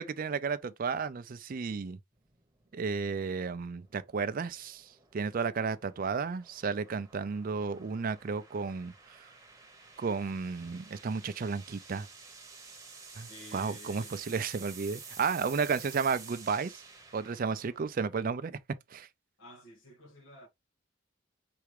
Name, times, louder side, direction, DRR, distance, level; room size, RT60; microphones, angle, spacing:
voice 1, 0.0-2.0 2.7-9.3 10.0-12.1 13.2-16.8 17.1-18.6 18.9-19.1, right 5 dB, 45° right, 0.4 m, -33 dB
sound 1, 2.2-18.4, right 5 dB, 15° right, 1.0 m, -51 dB
voice 2, 13.3-14.3 19.4-20.5, left 2 dB, 90° left, 1.8 m, -51 dB
4.7 x 3.4 x 3.1 m
head